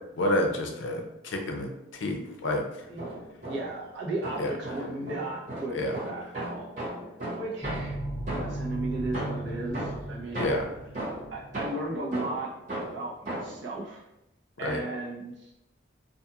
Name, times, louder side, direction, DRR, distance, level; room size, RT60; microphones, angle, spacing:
voice 1, 0.2-1.7 2.0-2.6 4.4-4.5 5.7-5.9 10.4-10.6 14.6-14.8, left 1 dB, 80° left, 3 dB, 0.5 m, -28 dB
sound 1, 2.8-3.9 4.2-8.7 9.1-13.7, right 1 dB, 40° right, 1.2 m, -37 dB
voice 2, 3.4-6.7 7.4-8.0 8.3-10.5 11.3-14.0 14.6-15.6, right 2 dB, 70° right, -4 dB, 0.7 m, -35 dB
sound 2, 7.6-11.6, right 1 dB, 15° left, 0.5 m, -36 dB
2.5 x 2.4 x 2.7 m, 0.89 s
head